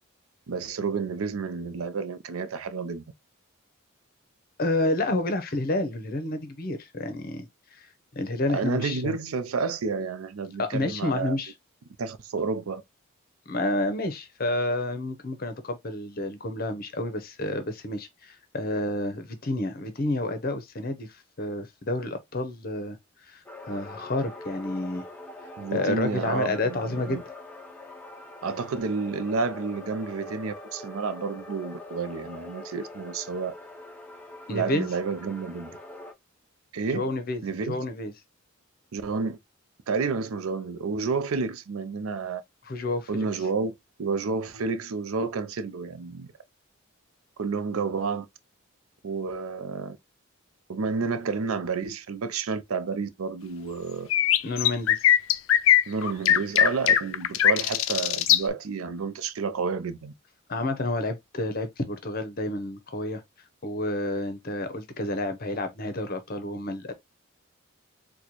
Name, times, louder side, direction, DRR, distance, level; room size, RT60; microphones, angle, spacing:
voice 1, 0.5-3.0 8.5-11.4 12.0-12.8 25.6-27.2 28.4-33.5 34.5-35.7 36.7-37.1 37.4-37.8 38.9-39.4 39.9-42.4 43.1-43.7 44.0-46.3 47.4-48.3 49.0-50.0 50.7-54.1 55.9-60.1, right 4 dB, 85° right, 0.5 m, -30 dB
voice 2, 4.6-7.9 8.1-9.2 10.6-11.5 13.5-23.0 23.3-25.0 25.7-27.2 34.5-34.9 36.9-38.1 42.7-43.3 54.4-55.1 60.5-63.2 63.6-66.9, left 2 dB, 45° left, 0.7 m, -30 dB
sound 1, 23.5-36.1, left 2 dB, 10° left, 0.5 m, -43 dB
sound 2, 54.1-58.4, left 10 dB, 70° left, 0.4 m, -20 dB
4.1 x 2.2 x 3.0 m
head